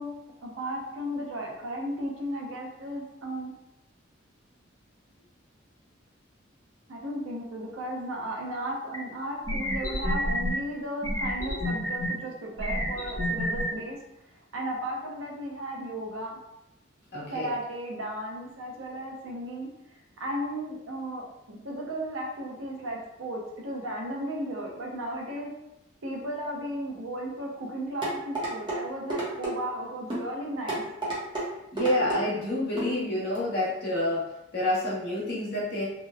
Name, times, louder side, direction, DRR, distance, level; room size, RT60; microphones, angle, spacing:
voice 1, 0.0-3.5 6.9-14.0 14.5-16.3 17.3-19.7 20.2-25.5 26.0-30.8, right 1 dB, 90° right, -1 dB, 0.6 m, -35 dB
sound 1, 8.9-9.0 9.5-10.5 11.0-12.1 12.6-13.6, left 1 dB, 15° left, 0.6 m, -29 dB
voice 2, 17.1-17.5 31.7-34.3 34.5-35.9, left 1 dB, 55° left, -6 dB, 0.9 m, -28 dB
sound 2, 28.0-28.8 29.1-29.5 30.1-30.3 30.7-31.5 31.8-32.2 32.8-32.9 33.3-33.4, right 2 dB, 25° right, 0.6 m, -30 dB
2.9 x 2.0 x 2.3 m, 0.87 s
head